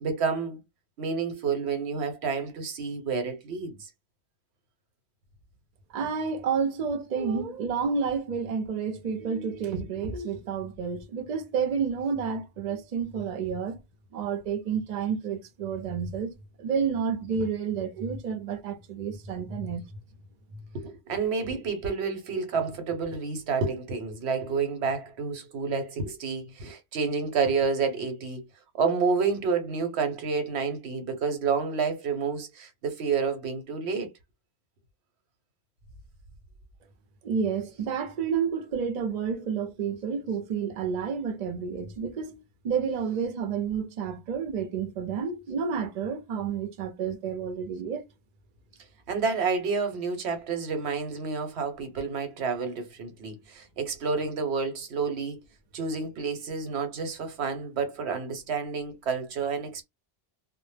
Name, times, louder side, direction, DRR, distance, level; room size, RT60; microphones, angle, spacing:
voice 1, 0.0-0.6 1.0-3.9 20.7-28.4 28.7-34.1 49.1-55.4 55.7-59.8, right 5 dB, 90° right, 1.0 m, -29 dB
voice 2, 5.9-13.8 14.1-16.3 16.6-19.8 37.2-48.0, right 6 dB, 50° right, 0.6 m, -30 dB
2.0 x 2.0 x 3.2 m
omnidirectional pair, 1.1 m